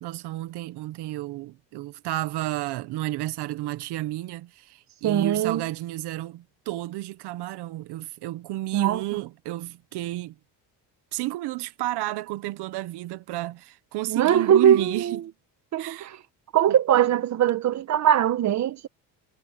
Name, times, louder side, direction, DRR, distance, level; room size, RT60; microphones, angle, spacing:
voice 1, 0.0-10.3 11.1-15.2 15.8-16.1 16.7-16.8, right 17 dB, 70° right, 1.1 m, -32 dB
voice 2, 5.0-5.6 8.7-9.0 14.1-15.2 15.7-16.2 16.5-18.9, right 10 dB, 40° right, 1.2 m, -21 dB
cardioid pair, 135°, 42 cm